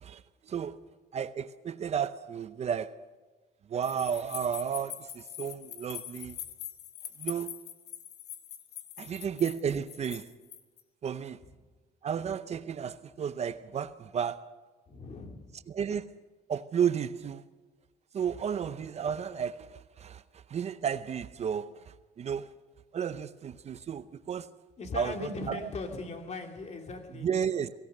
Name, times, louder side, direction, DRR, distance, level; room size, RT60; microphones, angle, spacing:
voice 1, 0.0-0.8 1.1-3.0 3.7-6.4 7.2-7.6 9.0-10.3 11.0-11.4 12.0-14.5 15.7-16.2 16.5-17.4 18.1-22.5 22.9-24.5 24.9-25.7 27.1-27.7, right 8 dB, 40° right, 0.7 m, -33 dB
sound 1, 3.8-10.8, left 11 dB, 75° left, 2.0 m, -43 dB
voice 2, 14.9-15.6 24.8-27.3, left 3 dB, 40° left, 2.7 m, -39 dB
23.0 x 17.5 x 6.6 m
cardioid pair, 110°, 17 cm